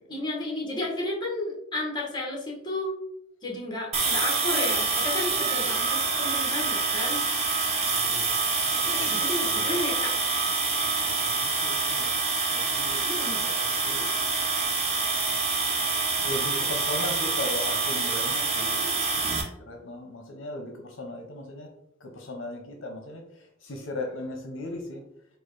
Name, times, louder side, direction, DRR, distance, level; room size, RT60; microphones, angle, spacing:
voice 1, 0.1-2.9 3.4-7.2 8.9-10.1 13.0-13.4, left 1 dB, 20° left, -3 dB, 1.3 m, -32 dB
sound 1, 3.9-19.4, right 4 dB, 35° right, 0.8 m, -26 dB
voice 2, 5.2-5.8 7.9-9.8 10.8-12.2 12.5-14.1 16.2-21.7 22.0-25.0, left 1 dB, 70° left, 3 dB, 0.7 m, -38 dB
4.6 x 2.4 x 4.5 m, 0.76 s
head